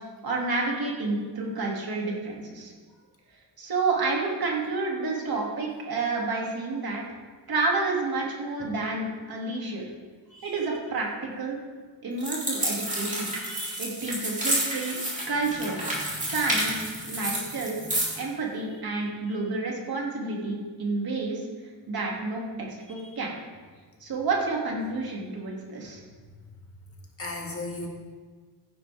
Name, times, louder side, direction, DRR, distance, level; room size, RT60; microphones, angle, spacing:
voice 1, 0.2-2.7 3.6-7.0 7.5-9.8 10.4-11.6 12.0-13.3 13.8-15.0 15.3-15.8 16.3-17.8 18.2-21.4 21.9-23.3 24.0-26.0, right 3 dB, 55° right, -2 dB, 2.5 m, -29 dB
voice 2, 10.3-10.7 13.3-13.8 16.1-16.4 17.8-18.0 19.3-19.4 23.0-23.2 27.2-27.9, left 2 dB, 30° left, 0 dB, 1.8 m, -38 dB
sound 1, 12.2-18.2, right 1 dB, 15° right, 2.8 m, -30 dB
15.5 x 10.0 x 3.5 m, 1.5 s
wide cardioid pair, 160°, 44 cm